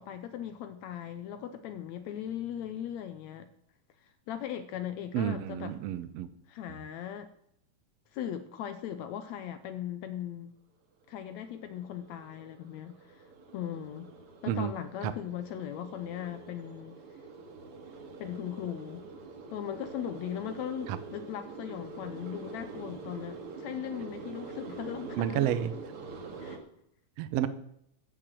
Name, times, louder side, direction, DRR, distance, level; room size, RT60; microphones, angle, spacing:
voice 1, 0.0-3.5 4.0-5.8 6.5-7.3 8.1-10.5 11.1-13.2 13.5-14.1 14.4-17.0 18.2-19.0 19.5-25.5 26.4-26.6, left 10 dB, 75° left, 1.7 m, -38 dB
voice 2, 5.1-6.3 14.5-14.7 15.0-15.1 20.9-21.0 25.2-25.7 27.2-27.5, right 11 dB, 75° right, 1.5 m, -30 dB
sound 1, 11.1-26.6, right 4 dB, 50° right, 2.4 m, -45 dB
15.0 x 7.3 x 7.5 m
omnidirectional pair, 3.8 m